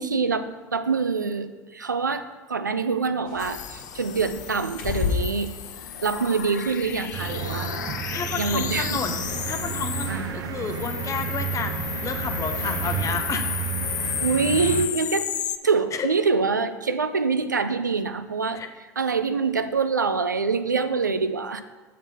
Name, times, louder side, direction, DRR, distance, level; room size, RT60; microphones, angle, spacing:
voice 1, 0.0-5.6 6.0-7.7 8.4-9.0 10.1-10.6 14.2-15.3 15.6-18.6 19.0-21.6, right 4 dB, 90° right, 10 dB, 0.4 m, -25 dB
Bird, 3.2-10.3, left 6 dB, 60° left, 1.3 m, -35 dB
sound 1, 3.4-10.2 10.6-15.6, left 10 dB, 75° left, 0.4 m, -33 dB
sound 2, 7.1-14.9, right 8 dB, 40° right, 0.5 m, -31 dB
voice 2, 8.1-13.6 16.0-16.1 18.5-18.7, left 5 dB, 35° left, 7 dB, 0.9 m, -31 dB
7.3 x 4.1 x 5.5 m, 1.4 s
figure-of-eight pair, 70°, 10 cm